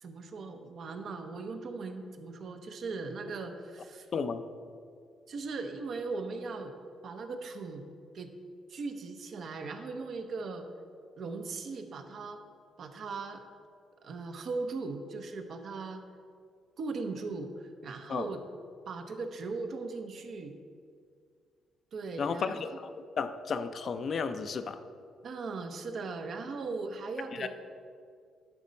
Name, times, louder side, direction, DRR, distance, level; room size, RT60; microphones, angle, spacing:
voice 1, 0.0-4.1 5.3-6.8 7.0-7.9 8.1-8.3 8.7-10.7 11.2-12.4 12.8-13.4 14.0-16.0 16.8-18.4 18.9-20.6 21.9-22.8 25.2-27.5, right 3 dB, 60° right, 6 dB, 0.8 m, -38 dB
voice 2, 4.1-4.4 18.1-18.3 22.2-22.7 23.2-24.8 27.3-27.5, left 5 dB, 55° left, 9 dB, 0.5 m, -33 dB
11.0 x 4.2 x 5.2 m, 2.2 s
cardioid pair, 85°, 0 cm